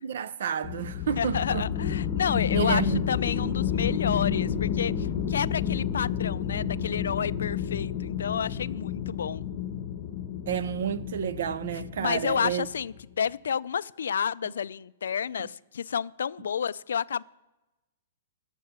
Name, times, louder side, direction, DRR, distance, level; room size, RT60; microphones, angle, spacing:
voice 1, 0.0-1.7 2.5-3.1 3.4-3.6 10.5-12.7, right 9 dB, 65° right, 0.6 m, -30 dB
sound 1, 0.6-12.7, left 8 dB, 30° left, 0.8 m, -30 dB
voice 2, 1.2-9.4 12.0-17.2, left 7 dB, 90° left, 0.3 m, -30 dB
12.0 x 7.0 x 7.3 m
hypercardioid pair, 165°, 0 cm